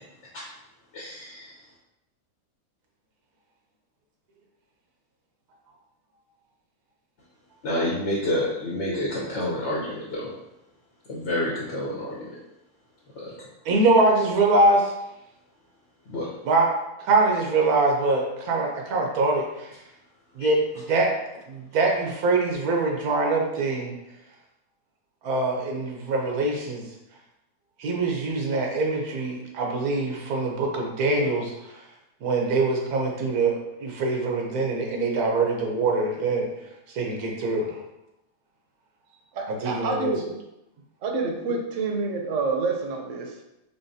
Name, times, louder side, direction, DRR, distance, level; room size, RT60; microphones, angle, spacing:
voice 1, 0.9-1.5 7.6-10.3 11.1-12.3 13.1-13.5 16.0-16.3 20.4-20.5, left 1 dB, 55° left, -6 dB, 1.1 m, -29 dB
voice 2, 13.7-14.9 16.4-16.7 17.1-19.7 20.4-20.6 20.9-21.1 21.5-23.9 25.2-26.9 27.8-31.5 32.2-36.5 36.9-37.8 39.5-40.1, right 3 dB, 90° right, 0 dB, 1.2 m, -23 dB
voice 3, 39.3-40.2 41.0-43.3, right 4 dB, 65° right, 2 dB, 0.9 m, -27 dB
3.9 x 3.3 x 2.7 m, 0.89 s
omnidirectional pair, 1.5 m